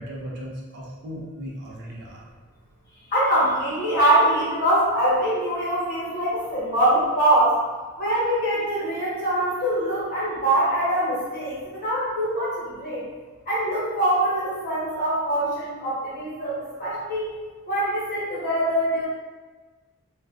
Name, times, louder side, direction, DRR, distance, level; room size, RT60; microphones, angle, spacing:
voice 1, 0.0-2.3, equal, 50° right, -3 dB, 0.5 m, -36 dB
voice 2, 3.1-7.6 8.0-13.0 13.5-17.3 17.7-19.1, right 1 dB, 40° left, -8 dB, 1.3 m, -23 dB
3.4 x 2.3 x 2.4 m, 1.3 s
head